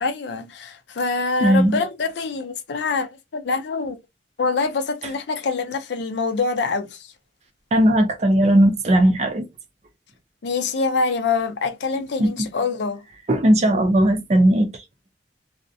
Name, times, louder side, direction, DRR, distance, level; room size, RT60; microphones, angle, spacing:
voice 1, 0.0-4.0 4.4-7.1 10.4-13.0, left 4 dB, 70° left, 0.5 m, -25 dB
voice 2, 1.4-1.8 7.7-9.5 12.0-12.3 13.3-14.7, right 1 dB, 35° right, 0.5 m, -17 dB
2.4 x 2.0 x 2.6 m
head